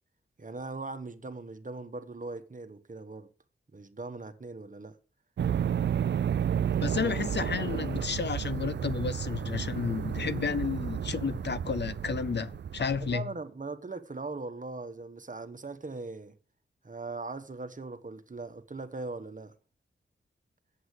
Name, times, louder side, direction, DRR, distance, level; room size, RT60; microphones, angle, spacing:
voice 1, 0.4-3.3 3.7-5.0 12.9-16.4 16.8-19.5, right 3 dB, 40° right, 1.3 m, -40 dB
sound 1, 5.4-13.1, right 8 dB, 60° right, 0.4 m, -32 dB
voice 2, 6.8-13.3, left 5 dB, 60° left, 0.6 m, -32 dB
8.0 x 7.8 x 8.2 m
wide cardioid pair, 65°, 21 cm